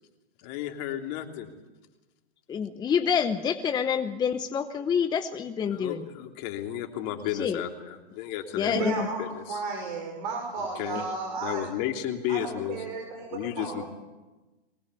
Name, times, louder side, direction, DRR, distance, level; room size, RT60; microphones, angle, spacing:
voice 1, 0.4-1.5 5.7-9.6 10.7-11.0 11.4-12.8 13.3-13.8, left 11 dB, 40° left, 4 dB, 3.2 m, -33 dB
voice 2, 2.5-6.0 7.4-7.6 8.5-8.9, left 7 dB, 15° left, 9 dB, 0.9 m, -27 dB
voice 3, 8.7-11.6 12.3-13.9, right 3 dB, 50° right, 2 dB, 6.2 m, -33 dB
22.5 x 19.5 x 8.4 m, 1.1 s
hypercardioid pair, 130°, 31 cm